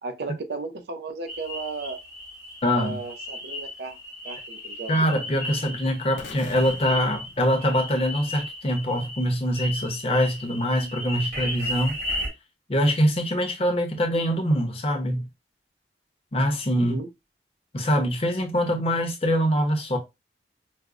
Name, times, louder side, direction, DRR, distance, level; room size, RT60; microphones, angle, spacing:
voice 1, 0.0-2.0 2.8-4.0 4.2-5.1 16.8-17.1, right 3 dB, 65° right, 0.5 m, -35 dB
sound 1, 1.3-12.3, left 1 dB, 45° right, 1.9 m, -35 dB
voice 2, 2.6-3.0 4.9-12.0 12.7-15.2 16.3-17.0 17.7-20.0, equal, 35° left, 0.6 m, -24 dB
sound 2, 6.2-8.3, left 3 dB, 90° left, 0.5 m, -43 dB
4.9 x 2.0 x 2.3 m
head